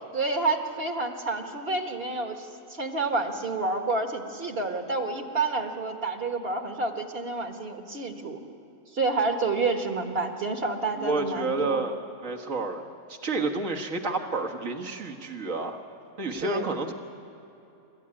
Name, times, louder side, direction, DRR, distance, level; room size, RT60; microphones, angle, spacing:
voice 1, 0.1-8.4 8.9-11.9 16.4-16.7, right 3 dB, 45° right, 4 dB, 1.7 m, -29 dB
voice 2, 11.0-12.0 12.2-15.8 16.2-16.9, right 3 dB, 65° right, 2 dB, 2.0 m, -30 dB
26.5 x 13.5 x 9.8 m, 2.9 s
omnidirectional pair, 1.5 m